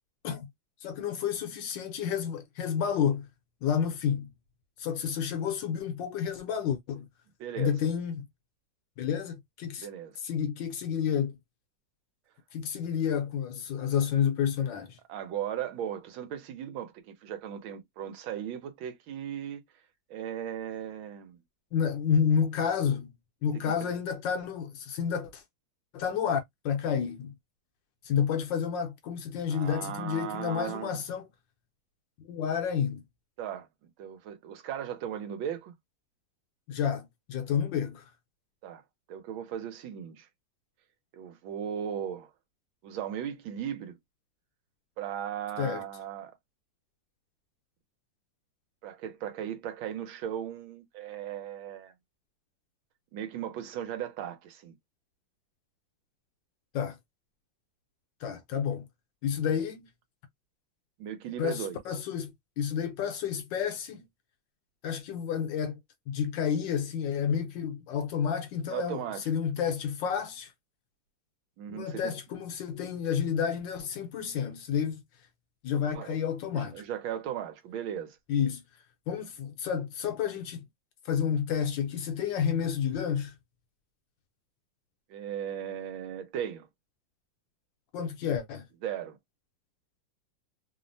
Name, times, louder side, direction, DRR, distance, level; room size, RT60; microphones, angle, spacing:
voice 1, 0.8-3.3 3.6-4.3 4.8-7.0 7.6-8.3 9.0-9.9 10.2-11.3 12.5-15.0 21.7-23.1 23.4-25.4 25.9-27.3 28.0-31.3 32.2-33.0 36.7-38.0 45.6-45.8 56.7-57.0 58.2-58.9 59.2-59.9 61.4-64.0 64.8-65.8 66.1-70.5 71.7-75.0 75.6-76.8 78.3-78.6 79.1-80.6 81.0-83.3 87.9-88.6, left 7 dB, 75° left, 1.2 m, -30 dB
voice 2, 7.4-7.7 9.8-10.2 15.1-19.6 20.1-21.4 23.5-23.9 29.5-31.0 33.4-35.7 38.6-38.8 39.1-40.3 41.1-42.3 42.8-43.9 45.0-46.4 48.8-51.9 53.1-54.7 61.0-61.8 68.7-69.2 71.6-72.1 75.9-76.2 76.5-78.2 85.1-86.7 88.8-89.2, right 9 dB, 80° right, 1.5 m, -37 dB
3.4 x 2.1 x 2.5 m
omnidirectional pair, 2.3 m